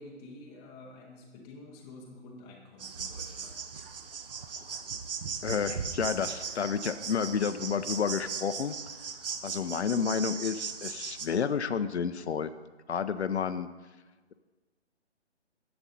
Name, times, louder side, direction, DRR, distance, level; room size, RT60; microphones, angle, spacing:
voice 1, 0.0-3.7, left 2 dB, 10° left, -1 dB, 0.6 m, -49 dB
sound 1, 2.8-11.3, right 6 dB, 55° right, 0.8 m, -38 dB
voice 2, 5.4-8.7 9.4-12.5 12.9-13.7, left 6 dB, 70° left, 12 dB, 0.6 m, -30 dB
10.0 x 7.8 x 4.1 m, 1.2 s
figure-of-eight pair, 140°, 35 cm